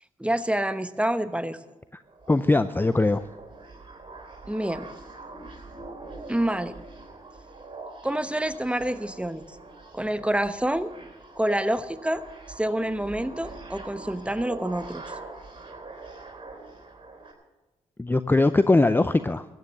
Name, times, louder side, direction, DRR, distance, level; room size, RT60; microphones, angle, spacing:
voice 1, 0.2-1.6 4.5-4.9 6.3-6.8 8.0-9.6 9.9-10.9 11.4-12.2 12.5-15.1, right 1 dB, 10° right, 12 dB, 0.9 m, -27 dB
sound 1, 2.0-17.3, right 3 dB, 35° right, 3.7 m, -43 dB
voice 2, 2.3-3.2 18.0-19.5, left 2 dB, 15° left, 12 dB, 0.5 m, -21 dB
14.5 x 9.3 x 7.4 m, 1.1 s
supercardioid pair, 45°, 15 cm